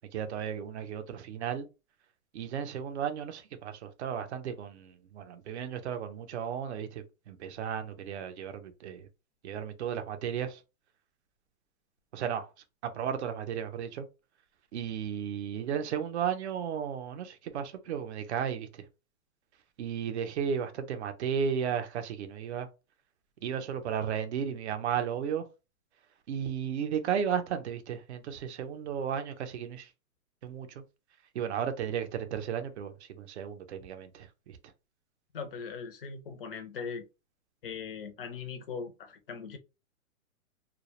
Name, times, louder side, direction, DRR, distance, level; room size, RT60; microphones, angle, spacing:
voice 1, 0.1-1.7 2.3-9.1 9.4-10.6 12.1-12.5 12.8-14.1 14.7-18.8 19.8-22.7 23.4-25.4 26.3-29.9 30.4-30.7 31.3-34.6, right 8 dB, 55° right, 0.5 m, -34 dB
voice 2, 35.3-37.0 37.6-39.6, left 5 dB, 45° left, 0.4 m, -40 dB
2.2 x 2.0 x 2.8 m
hypercardioid pair, 165°, 42 cm